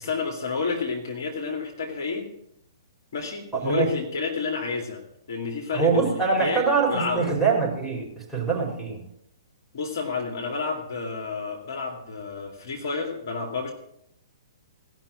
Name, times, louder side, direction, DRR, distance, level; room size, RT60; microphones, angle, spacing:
voice 1, 0.0-2.3 3.1-5.0 5.3-7.3 9.7-13.7, left 4 dB, 50° left, 1 dB, 2.4 m, -30 dB
voice 2, 3.5-3.9 5.7-9.0, right 5 dB, ahead, -2 dB, 4.9 m, -24 dB
18.0 x 6.1 x 7.6 m, 0.76 s
figure-of-eight pair, 120°, 2 cm